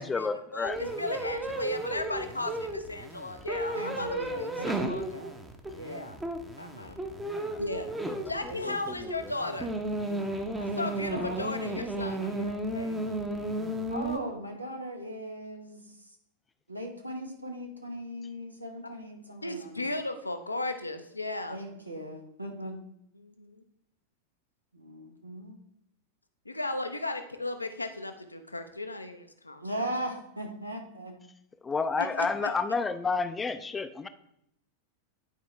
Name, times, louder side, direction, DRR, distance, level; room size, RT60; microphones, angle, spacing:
voice 1, 0.0-0.8 7.3-7.6 8.1-9.3 31.6-34.1, left 4 dB, 15° left, 10 dB, 0.5 m, -31 dB
voice 2, 0.5-5.2 5.8-6.2 6.6-7.0 7.6-7.9 8.3-9.7 10.6-13.0 19.4-21.6 22.6-22.7 23.2-23.6 26.5-29.9 32.0-32.5, left 2 dB, 85° left, 7 dB, 0.7 m, -36 dB
sound 1, 0.6-14.2, right 1 dB, 10° right, 0.8 m, -34 dB
voice 3, 3.7-5.3 5.7-6.2 7.6-7.9 8.3-8.6 10.7-11.7 13.9-16.0 16.7-19.9 21.5-22.8 24.7-25.6 29.6-31.2, right 1 dB, 85° right, 3 dB, 1.1 m, -39 dB
10.0 x 4.7 x 3.3 m, 0.76 s
figure-of-eight pair, 90°, 0 cm